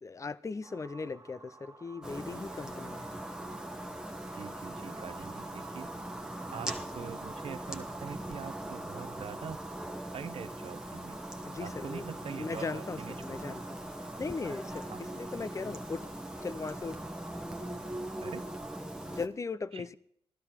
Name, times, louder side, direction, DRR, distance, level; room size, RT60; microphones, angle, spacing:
voice 1, 0.0-3.1 11.4-13.8 14.2-16.1 16.4-17.0 19.1-19.9, left 4 dB, 30° left, 0.6 m, -38 dB
sound 1, 0.6-18.8, right 3 dB, 30° right, 1.2 m, -53 dB
sound 2, 2.0-19.3, right 1 dB, 5° right, 1.1 m, -41 dB
voice 2, 4.3-5.9 6.5-9.6 10.1-11.2 11.6-13.6 14.9-15.0 18.2-18.5 19.7-19.8, right 7 dB, 65° right, 0.7 m, -44 dB
16.0 x 12.0 x 4.4 m
cardioid pair, 75°, 10 cm